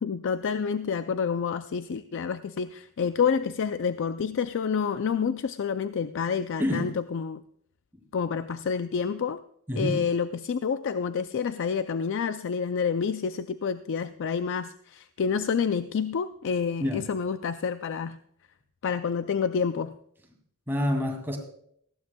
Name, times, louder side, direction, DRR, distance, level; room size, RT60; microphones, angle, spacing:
voice 1, 0.0-7.4 8.1-9.4 9.8-18.2 18.8-19.9, left 6 dB, 60° left, 11 dB, 0.4 m, -28 dB
voice 2, 6.6-6.9 7.9-8.0 9.7-10.0 16.8-17.0 20.7-21.4, left 1 dB, 10° right, 2 dB, 2.4 m, -27 dB
19.0 x 15.0 x 2.3 m, 0.67 s
head